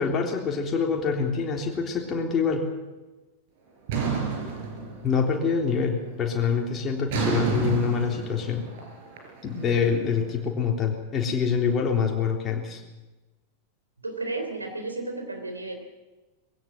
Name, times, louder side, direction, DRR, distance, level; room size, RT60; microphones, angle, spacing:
voice 1, 0.0-2.7 5.0-8.6 9.4-12.8, left 6 dB, 25° left, 1 dB, 3.5 m, -25 dB
sound 1, 3.9-5.4 5.8-6.2 7.1-10.2, right 4 dB, 50° right, 4.6 m, -30 dB
voice 2, 14.0-15.8, right 2 dB, 80° right, 4 dB, 3.7 m, -33 dB
21.5 x 16.5 x 7.6 m, 1.2 s
figure-of-eight pair, 90°, 0 cm